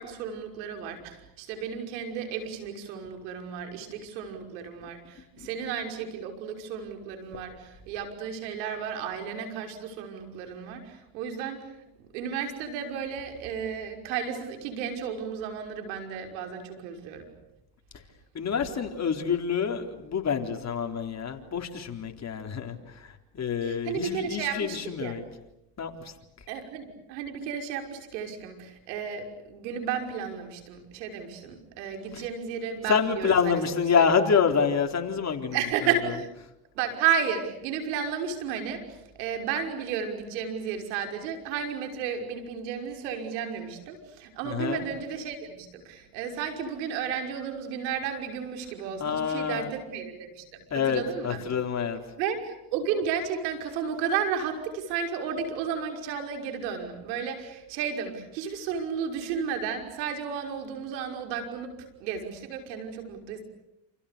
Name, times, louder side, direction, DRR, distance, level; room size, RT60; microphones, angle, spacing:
voice 1, 0.0-11.7 12.1-17.3 23.6-25.2 26.5-33.6 34.0-34.1 35.5-36.3 36.8-38.8 39.2-51.4 52.2-63.4, right 7 dB, 80° right, 4 dB, 5.9 m, -33 dB
voice 2, 18.4-22.8 23.3-25.2 25.8-25.9 32.9-35.6 44.4-44.8 49.0-49.7 50.7-52.0, left 6 dB, 30° left, 4 dB, 3.9 m, -27 dB
29.0 x 28.5 x 6.9 m, 0.87 s
supercardioid pair, 95°, 50 cm